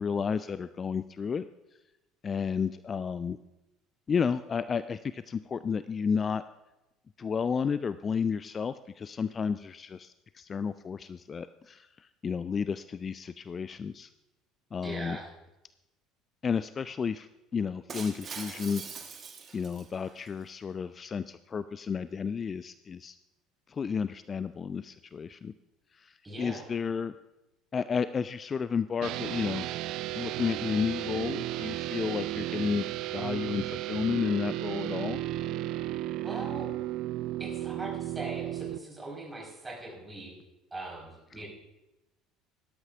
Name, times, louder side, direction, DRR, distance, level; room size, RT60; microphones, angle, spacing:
voice 1, 0.0-1.4 2.2-3.4 4.1-6.4 7.2-14.1 14.7-15.2 16.4-18.8 19.5-23.2 23.7-25.5 25.9-27.2 27.7-29.7 30.1-32.9 33.1-35.2, left 6 dB, 30° left, 14 dB, 0.3 m, -32 dB
voice 2, 14.8-15.3 26.2-26.7 36.1-36.7 37.4-40.3 40.7-41.5, right 2 dB, 15° right, -3 dB, 4.7 m, -40 dB
Shatter, 17.9-20.3, right 5 dB, 35° right, 1.3 m, -43 dB
sound 1, 29.0-38.8, right 15 dB, 55° right, 0.4 m, -34 dB
17.5 x 12.0 x 2.5 m, 0.98 s
figure-of-eight pair, 60°, 0 cm